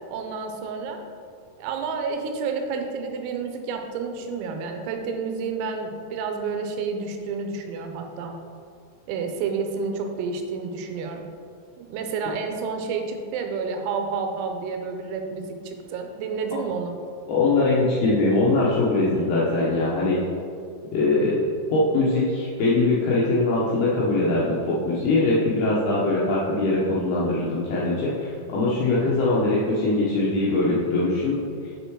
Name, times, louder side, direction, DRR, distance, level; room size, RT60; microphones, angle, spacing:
voice 1, 0.1-1.0 1.6-8.4 9.1-11.3 11.8-17.0, right 5 dB, 90° right, 4 dB, 3.6 m, -30 dB
voice 2, 17.3-20.2 20.9-21.4 21.7-31.4, left 2 dB, 75° left, -7 dB, 2.3 m, -22 dB
7.3 x 6.7 x 4.6 m, 2.3 s
omnidirectional pair, 5.9 m